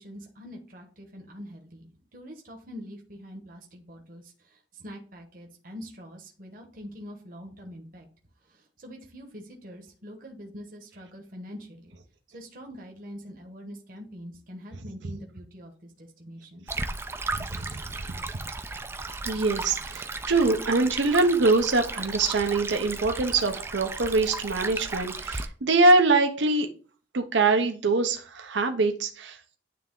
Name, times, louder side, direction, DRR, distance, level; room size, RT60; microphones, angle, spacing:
voice 1, 0.0-8.1 8.4-12.0 12.3-16.8 25.8-25.9, equal, 50° right, 2 dB, 1.1 m, -44 dB
Stream, 16.7-25.5, right 3 dB, 15° right, 0.3 m, -35 dB
voice 2, 17.4-17.9 19.2-26.7 27.1-29.6, right 3 dB, 80° right, 5 dB, 0.8 m, -24 dB
9.4 x 3.4 x 3.7 m, 0.39 s
head